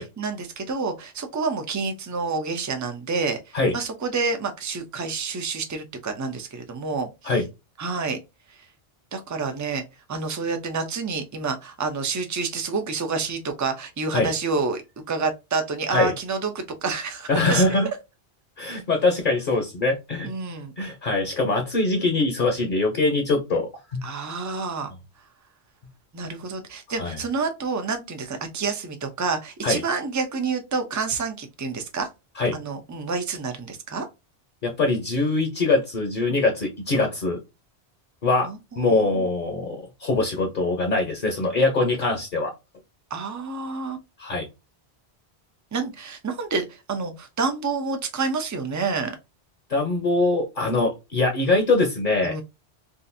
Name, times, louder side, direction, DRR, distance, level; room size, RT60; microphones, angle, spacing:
voice 1, 0.0-7.3 7.8-8.2 9.1-9.8 10.1-14.8 15.1-17.6 20.2-20.7 24.0-24.9 26.1-32.1 32.5-34.1 38.4-39.3 43.1-44.0 45.7-49.2 52.2-52.4, right 4 dB, 25° right, 0.4 m, -28 dB
voice 2, 17.3-17.9 18.6-20.3 20.8-24.0 27.0-27.2 29.6-29.8 32.4-32.5 34.6-37.4 38.2-38.5 38.8-42.5 44.2-44.5 49.7-52.3, left 3 dB, 55° left, 0.9 m, -23 dB
3.7 x 2.5 x 2.6 m
omnidirectional pair, 1.1 m